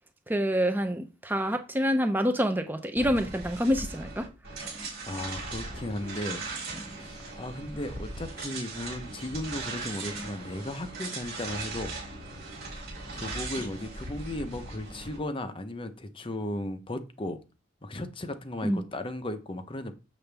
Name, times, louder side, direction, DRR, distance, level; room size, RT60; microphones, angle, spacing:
voice 1, 0.3-4.3 18.6-18.8, equal, 10° right, 0.6 m, -27 dB
sound 1, 3.0-15.2, right 3 dB, 55° right, 3.8 m, -39 dB
voice 2, 5.0-6.4 6.9-11.9 13.1-17.4 17.8-19.9, left 1 dB, 25° left, 0.8 m, -36 dB
7.0 x 6.8 x 3.4 m
head